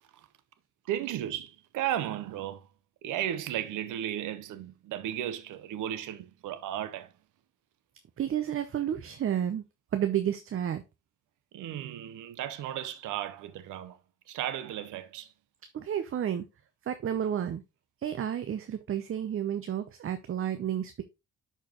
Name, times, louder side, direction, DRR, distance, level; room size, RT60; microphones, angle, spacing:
voice 1, 0.9-2.6 3.0-7.1 11.5-14.0 14.3-15.3, right 11 dB, 85° right, 0.8 m, -34 dB
voice 2, 8.2-9.6 9.9-10.8 15.7-16.4 16.9-17.6 18.0-21.0, right 10 dB, 45° right, 0.7 m, -31 dB
10.5 x 4.6 x 3.0 m
cardioid pair, 90°, 30 cm